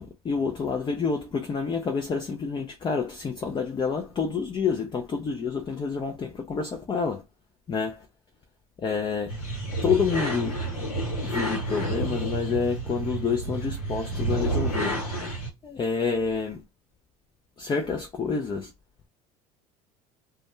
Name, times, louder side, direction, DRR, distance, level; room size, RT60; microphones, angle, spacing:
voice 1, 0.0-7.2 7.7-8.1 8.8-9.3 9.8-10.5 11.2-15.0 15.6-16.6 17.6-18.7, left 5 dB, 25° left, 0.5 m, -28 dB
sound 1, 9.3-15.5, right 2 dB, 85° left, 1.0 m, -30 dB
2.2 x 2.1 x 3.0 m
hypercardioid pair, 75°, 19 cm